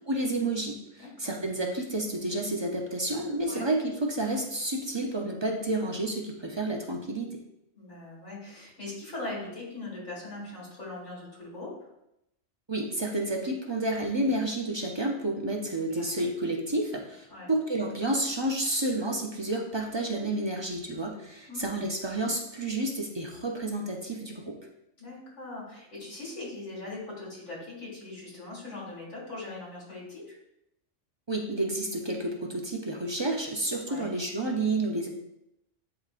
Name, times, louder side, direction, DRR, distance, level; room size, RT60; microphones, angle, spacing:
voice 1, 0.1-7.4 12.7-24.6 31.3-35.1, right 2 dB, 30° right, 1 dB, 0.5 m, -30 dB
voice 2, 1.0-1.3 3.5-3.6 7.7-11.7 14.2-14.3 15.9-16.0 17.3-17.5 21.5-21.9 25.0-30.3 33.9-34.1, left 2 dB, 70° left, -5 dB, 2.4 m, -40 dB
10.5 x 3.6 x 2.5 m, 0.84 s
omnidirectional pair, 1.3 m